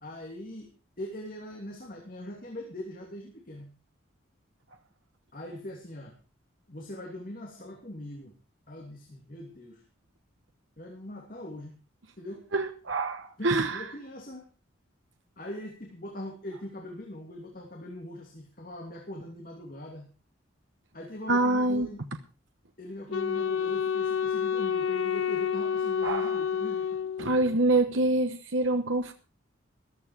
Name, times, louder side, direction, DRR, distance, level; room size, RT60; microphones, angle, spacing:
voice 1, 0.0-3.7 5.3-6.2 6.7-8.4 8.7-9.8 10.8-11.8 12.2-12.5 13.4-14.5 15.4-20.1 20.9-22.1 22.8-27.0, left 1 dB, 45° left, 1 dB, 2.7 m, -41 dB
voice 2, 12.5-13.9 21.3-21.9 26.0-26.4 27.2-29.1, right 2 dB, 75° right, 7 dB, 1.2 m, -26 dB
Wind instrument woodwind instrument, 23.1-27.5, left 7 dB, 80° left, 0.7 m, -29 dB
14.5 x 13.5 x 4.7 m, 0.34 s
head